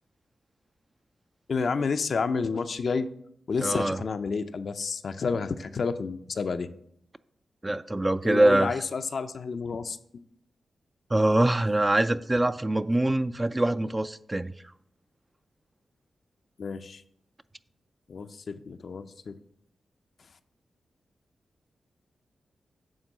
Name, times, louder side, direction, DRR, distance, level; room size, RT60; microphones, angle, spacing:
voice 1, 1.5-3.1 3.5-6.7 8.2-10.0 16.6-17.0 18.1-19.4, left 5 dB, 65° left, 0.5 m, -30 dB
voice 2, 3.6-4.0 7.6-8.8 11.1-14.5, right 1 dB, 25° right, 0.4 m, -24 dB
8.8 x 3.7 x 6.5 m
supercardioid pair, 45°, 0 cm